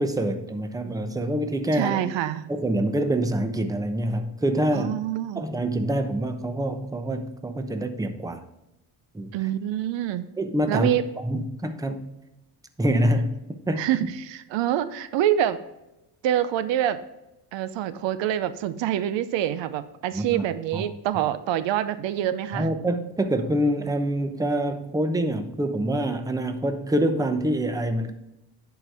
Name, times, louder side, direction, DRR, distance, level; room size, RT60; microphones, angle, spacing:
voice 1, 0.0-2.0 2.5-4.9 5.4-8.4 9.1-9.3 10.4-10.9 11.2-12.1 12.8-13.3 13.7-13.8 20.1-20.4 20.7-20.8 22.5-28.1, right 1 dB, 10° right, 0.8 m, -25 dB
voice 2, 1.7-2.5 4.7-5.4 9.3-10.3 10.7-11.0 13.8-15.6 16.2-17.0 17.5-22.7, right 11 dB, 70° right, 0.7 m, -26 dB
10.5 x 4.7 x 3.4 m
cardioid pair, 105°, 45 cm